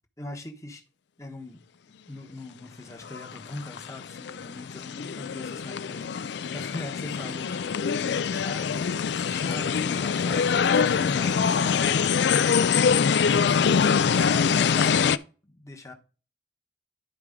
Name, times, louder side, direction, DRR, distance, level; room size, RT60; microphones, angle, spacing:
voice 1, 0.2-0.8 1.2-1.6 2.1-13.2 14.0-15.9, left 2 dB, 15° left, 1.0 m, -41 dB
sound 1, 3.0-15.2, left 6 dB, 65° left, 0.4 m, -24 dB
11.5 x 4.7 x 3.6 m
head